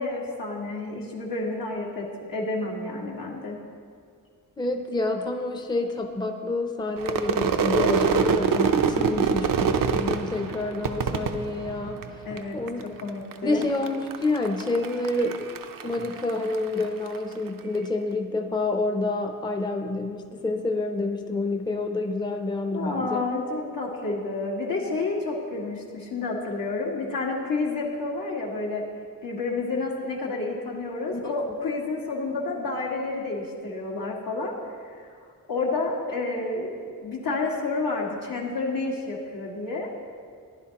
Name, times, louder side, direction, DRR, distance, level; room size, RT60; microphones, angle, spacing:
voice 1, 0.0-3.6 12.3-13.6 22.7-28.8 29.2-34.5 35.0-35.1 35.5-36.8 37.0-39.9, left 3 dB, 85° left, -2 dB, 1.9 m, -30 dB
voice 2, 4.6-12.2 12.5-12.8 13.4-23.2, left 2 dB, 15° left, 5 dB, 0.6 m, -28 dB
Crowd / Fireworks, 7.0-12.4 12.7-13.3 13.6-17.2, right 6 dB, 75° right, 0.6 m, -25 dB
15.5 x 10.5 x 2.9 m, 2.2 s
wide cardioid pair, 150°, 33 cm